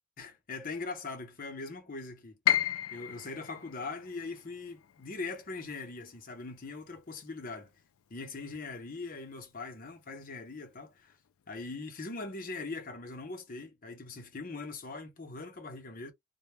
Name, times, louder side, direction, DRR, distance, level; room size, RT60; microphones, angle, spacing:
voice 1, 0.2-2.4 2.9-7.7 8.1-11.2 11.5-16.1, left 3 dB, 40° left, 0.7 m, -41 dB
Piano, 2.5-8.4 8.7-9.9 10.3-10.4 11.1-11.4, left 11 dB, 90° left, 0.4 m, -35 dB
2.1 x 2.1 x 3.1 m
head